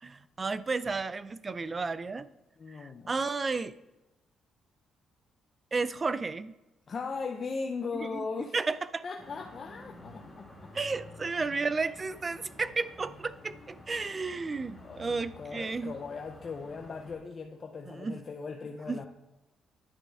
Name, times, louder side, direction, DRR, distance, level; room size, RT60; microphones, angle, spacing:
voice 1, 0.0-2.3 2.8-3.7 5.7-6.5 8.0-8.2 8.5-9.0 10.7-15.9 17.9-18.2 18.9-19.0, right 4 dB, 30° right, 15 dB, 0.4 m, -33 dB
voice 2, 2.6-3.1 6.9-8.5 9.0-10.7 14.8-19.1, left 4 dB, 45° left, 3 dB, 0.7 m, -38 dB
sound 1, 9.2-17.2, left 2 dB, 15° left, 2.6 m, -50 dB
10.0 x 6.8 x 3.5 m, 1.0 s
cardioid pair, 90°, 0 cm